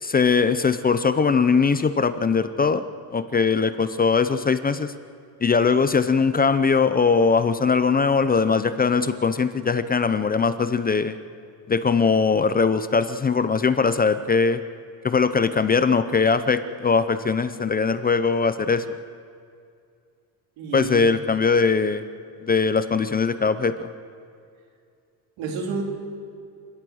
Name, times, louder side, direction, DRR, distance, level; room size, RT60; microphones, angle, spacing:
voice 1, 0.0-2.8 3.1-4.9 5.4-11.2 11.7-14.6 15.0-18.8 20.7-22.0 22.4-23.9, left 5 dB, 20° left, 12 dB, 0.5 m, -21 dB
voice 2, 20.6-21.1 25.4-25.8, right 4 dB, 85° right, 2 dB, 3.6 m, -29 dB
29.0 x 16.0 x 6.3 m, 2.4 s
cardioid pair, 145°, 46 cm